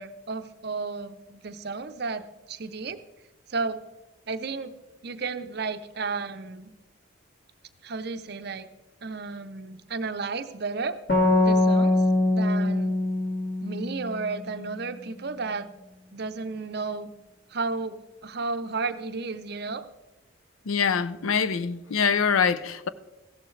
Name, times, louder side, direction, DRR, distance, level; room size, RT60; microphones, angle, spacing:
voice 1, 0.0-2.2 2.5-3.0 3.5-3.8 4.3-4.7 5.0-6.7 7.8-8.7 9.0-11.0 11.4-12.0 12.3-12.9 13.6-15.7 16.1-17.1 17.5-19.9, right 4 dB, 50° right, 0.6 m, -33 dB
sound 1, 11.1-14.6, left 2 dB, 45° left, 2.0 m, -23 dB
voice 2, 20.7-22.9, left 6 dB, 80° left, 0.5 m, -24 dB
15.5 x 11.5 x 3.2 m
head